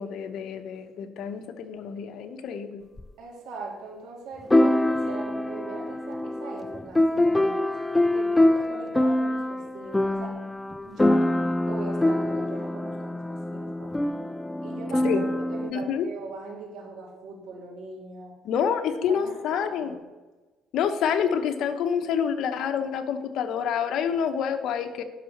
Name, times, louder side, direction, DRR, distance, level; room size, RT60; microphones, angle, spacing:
voice 1, 0.0-2.8 15.0-15.2 15.7-16.1 18.4-19.9 20.7-25.0, left 7 dB, 65° left, 8 dB, 0.9 m, -27 dB
sound 1, 3.0-3.1 4.5-15.7, left 1 dB, 10° left, 0.3 m, -24 dB
voice 2, 3.2-7.6 8.1-10.4 10.8-11.3 11.7-14.3 14.6-15.2 15.5-18.4 19.1-20.0, right 4 dB, 70° right, -2 dB, 3.0 m, -40 dB
10.5 x 5.8 x 6.6 m, 1.2 s
cardioid pair, 120°, 0 cm